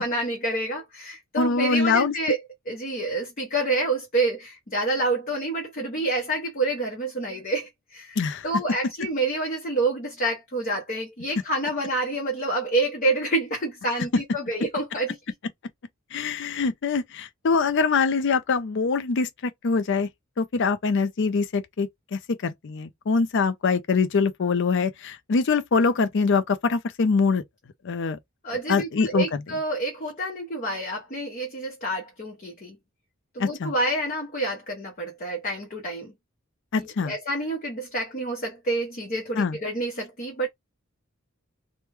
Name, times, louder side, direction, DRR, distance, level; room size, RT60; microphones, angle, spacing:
voice 1, 0.0-2.4 2.7-8.2 8.4-15.2 28.4-32.8 33.3-36.1 36.8-40.5, right 2 dB, 40° left, 0.9 m, -28 dB
voice 2, 1.4-2.1 8.2-8.4 16.1-20.1 20.4-27.4 27.8-28.2 28.7-29.3 33.4-33.7 36.7-37.1 39.4-39.6, left 4 dB, 60° left, 0.5 m, -24 dB
3.0 x 2.2 x 3.3 m
head